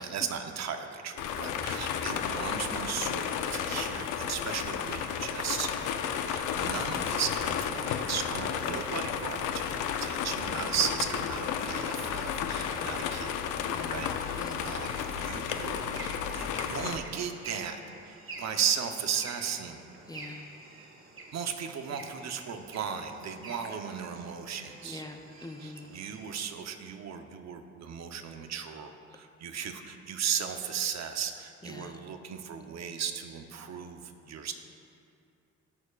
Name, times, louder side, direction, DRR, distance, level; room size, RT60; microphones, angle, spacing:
voice 1, 0.0-13.4 13.9-17.8 18.1-19.8 21.3-25.0 25.6-34.0 34.3-34.5, right 7 dB, 60° right, 6 dB, 0.8 m, -36 dB
sound 1, 1.2-17.0, left 8 dB, 90° left, 0.6 m, -32 dB
voice 2, 12.7-13.0 13.7-14.0 14.4-14.7 20.1-20.4 24.8-25.9 31.6-32.0, left 2 dB, 15° left, 5 dB, 0.6 m, -45 dB
sound 2, 14.0-26.4, right 2 dB, 45° right, 1.4 m, -48 dB
19.0 x 6.6 x 2.4 m, 2.6 s
cardioid pair, 90°, 30 cm